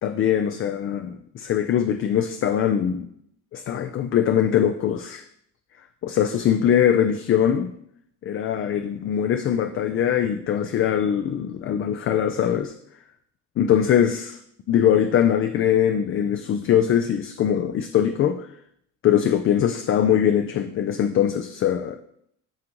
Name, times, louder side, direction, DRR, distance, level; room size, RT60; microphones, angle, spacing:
voice 1, 0.0-3.1 3.5-5.2 6.0-7.7 8.2-12.7 13.6-14.4 14.7-18.5 19.0-22.0, left 9 dB, 45° left, 8 dB, 0.4 m, -22 dB
11.0 x 3.8 x 3.0 m, 0.72 s
cardioid pair, 115°, 31 cm